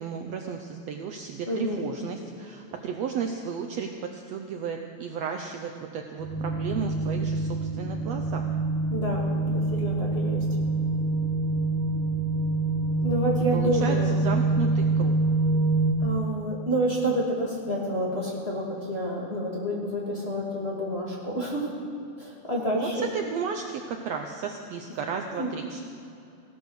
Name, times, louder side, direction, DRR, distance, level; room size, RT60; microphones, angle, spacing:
voice 1, 0.0-3.9 4.3-7.5 7.8-8.5 13.5-14.0 14.2-15.1 22.7-25.9, right 6 dB, 90° right, 4 dB, 1.4 m, -33 dB
voice 2, 1.5-1.8 8.9-10.4 13.0-14.1 16.0-21.7 22.2-23.0 25.3-25.5, equal, 20° left, -4 dB, 2.1 m, -29 dB
sound 1, 6.2-15.9, right 2 dB, 45° right, 2.2 m, -26 dB
17.0 x 12.0 x 6.4 m, 2.6 s
omnidirectional pair, 4.1 m